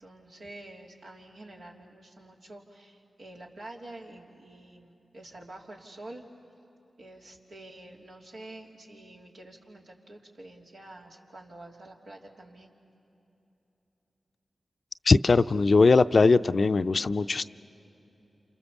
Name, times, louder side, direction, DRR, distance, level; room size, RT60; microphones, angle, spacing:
voice 1, 0.0-6.2 7.0-12.7, right 1 dB, 85° right, -2 dB, 3.0 m, -47 dB
voice 2, 15.0-17.4, left 3 dB, 60° left, 12 dB, 0.5 m, -20 dB
28.5 x 28.0 x 7.2 m, 3.0 s
cardioid pair, 45°, 0 cm